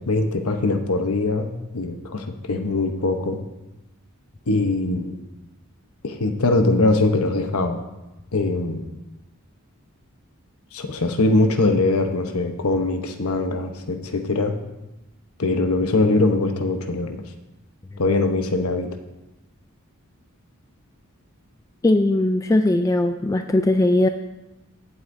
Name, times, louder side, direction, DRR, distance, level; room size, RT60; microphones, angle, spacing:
voice 1, 0.0-3.4 4.5-5.2 6.0-7.8 8.3-8.8 10.7-14.6 15.4-17.2 18.0-18.9, left 2 dB, 85° left, 6 dB, 1.0 m, -22 dB
voice 2, 21.8-24.1, left 1 dB, 15° left, 6 dB, 0.3 m, -19 dB
15.5 x 8.0 x 2.7 m, 0.99 s
head